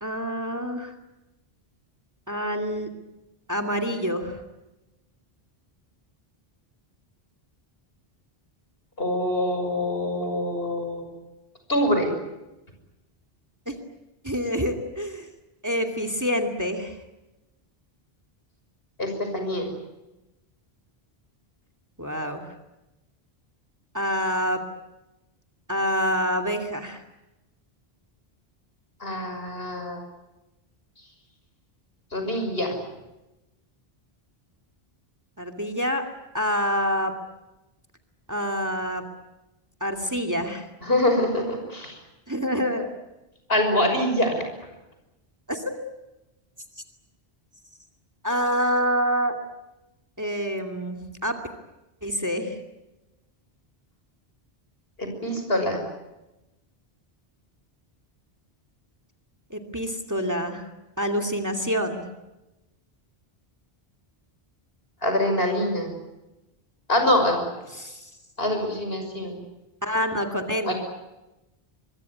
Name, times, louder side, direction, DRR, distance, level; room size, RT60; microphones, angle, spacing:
voice 1, 0.0-0.9 2.3-2.9 3.5-4.4 13.7-13.8 14.2-15.3 15.6-16.9 22.0-22.5 23.9-24.6 25.7-27.0 35.4-36.1 36.3-37.1 38.3-39.0 39.8-40.7 42.3-42.9 45.5-45.7 48.2-49.4 50.2-51.4 52.0-52.6 59.5-60.6 61.0-62.0 67.8-68.1 69.8-70.7, equal, 15° right, 6 dB, 2.6 m, -27 dB
voice 2, 9.0-11.1 11.7-12.1 19.0-19.7 29.0-30.0 32.1-32.8 40.8-42.0 43.5-44.4 55.0-55.8 65.0-65.9 66.9-67.4 68.4-69.4 70.6-70.7, left 1 dB, 70° left, 5 dB, 6.4 m, -24 dB
24.5 x 23.5 x 9.6 m, 0.99 s
omnidirectional pair, 1.0 m